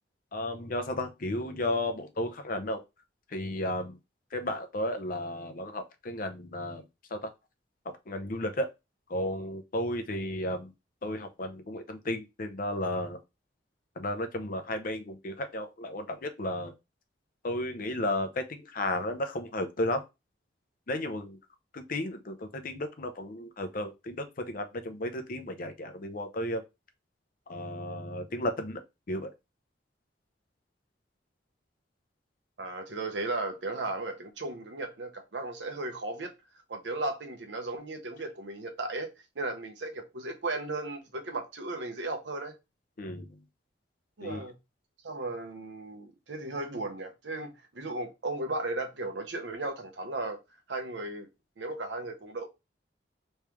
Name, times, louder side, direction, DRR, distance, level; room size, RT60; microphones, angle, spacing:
voice 1, 0.3-2.8 3.3-4.0 4.3-7.3 8.1-8.7 9.1-10.7 11.0-13.2 14.0-16.7 17.4-20.0 20.9-21.4 21.7-26.6 27.5-28.8 29.1-29.3 43.0-43.4 44.2-44.5, left 1 dB, 50° left, 0.6 m, -33 dB
voice 2, 32.6-36.3 36.7-39.1 39.4-42.5 44.2-44.6 45.0-50.4 50.7-51.3 51.6-52.5, right 2 dB, 80° right, 0.9 m, -35 dB
3.2 x 3.1 x 3.4 m
head